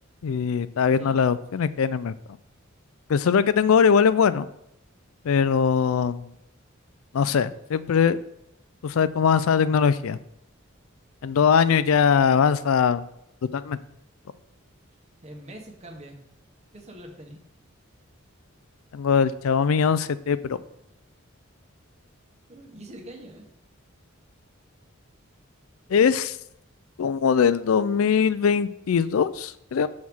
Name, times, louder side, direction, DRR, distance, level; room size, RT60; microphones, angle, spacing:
voice 1, 0.2-2.1 3.1-4.4 5.2-6.3 7.1-8.2 8.8-10.2 11.2-13.0 13.5-13.8 18.9-20.4 25.9-26.4 27.0-29.9, left 6 dB, 80° left, 15 dB, 0.4 m, -21 dB
voice 2, 0.9-1.2 11.6-12.4 15.2-16.2 16.7-17.4 22.5-23.5, right 1 dB, 35° right, 1 dB, 1.1 m, -43 dB
6.4 x 3.6 x 6.0 m, 0.76 s
head